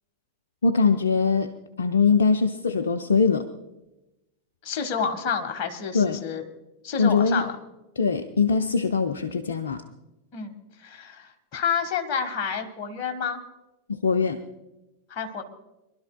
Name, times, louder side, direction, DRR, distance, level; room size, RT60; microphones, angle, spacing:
voice 1, 0.6-3.5 5.9-6.2 7.0-7.4 8.0-9.8 13.9-14.4, left 5 dB, 70° left, 8 dB, 0.6 m, -22 dB
voice 2, 4.6-6.4 6.8-7.5 10.3-13.4 15.1-15.4, left 6 dB, 40° left, 4 dB, 1.6 m, -29 dB
26.5 x 12.0 x 2.3 m, 0.98 s
figure-of-eight pair, 90°, 0 cm